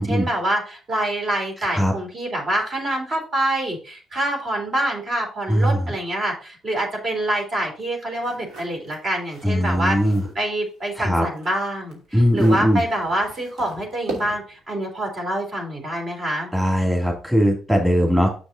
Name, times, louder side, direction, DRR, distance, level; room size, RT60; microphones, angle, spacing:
voice 1, 0.0-10.0 10.3-16.5, right 1 dB, 45° right, 1 dB, 3.3 m, -26 dB
voice 2, 5.5-5.8 9.4-10.3 11.0-11.2 12.1-12.8 16.5-18.3, equal, 10° right, -1 dB, 2.7 m, -19 dB
sound 1, 8.2-10.4 10.8-14.6, right 1 dB, 75° right, 2.7 m, -39 dB
6.4 x 6.2 x 3.9 m, 0.36 s
cardioid pair, 80°, 0 cm